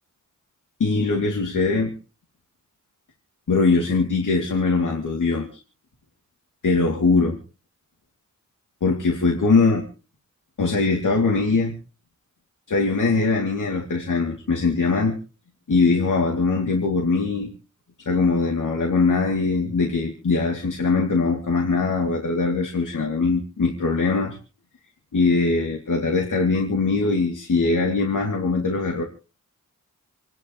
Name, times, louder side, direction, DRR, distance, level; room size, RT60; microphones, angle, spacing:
voice 1, 0.8-1.9 3.5-5.6 6.6-7.4 8.8-9.8 10.6-11.7 12.7-15.1 15.7-17.5 18.0-24.4 25.1-29.0, left 3 dB, 70° left, 1 dB, 2.8 m, -21 dB
28.5 x 11.0 x 3.1 m, 0.35 s
wide cardioid pair, 100°, 32 cm